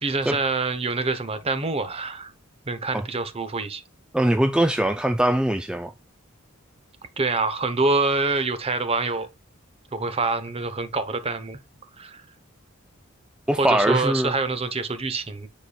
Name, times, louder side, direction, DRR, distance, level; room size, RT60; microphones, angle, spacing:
voice 1, 0.0-2.3 2.7-3.8 7.2-9.3 9.9-11.6 12.0-12.2 13.5-15.5, right 3 dB, 30° right, 0.9 m, -26 dB
voice 2, 4.1-5.9 13.5-14.3, right 1 dB, 5° right, 0.4 m, -21 dB
9.2 x 5.0 x 2.3 m
head